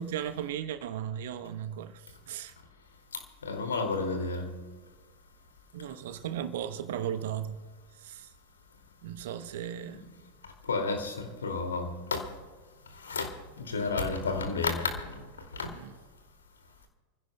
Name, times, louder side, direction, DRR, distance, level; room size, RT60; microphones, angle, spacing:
voice 1, 0.0-2.5 5.7-7.6 7.9-8.3 9.0-10.0 15.6-15.9, right 9 dB, 55° right, 1.0 m, -36 dB
voice 2, 3.1-4.5 9.9-10.1 10.6-12.3 12.9-15.7, left 4 dB, 70° left, 2.6 m, -32 dB
29.0 x 16.0 x 2.3 m
figure-of-eight pair, 90°, 0 cm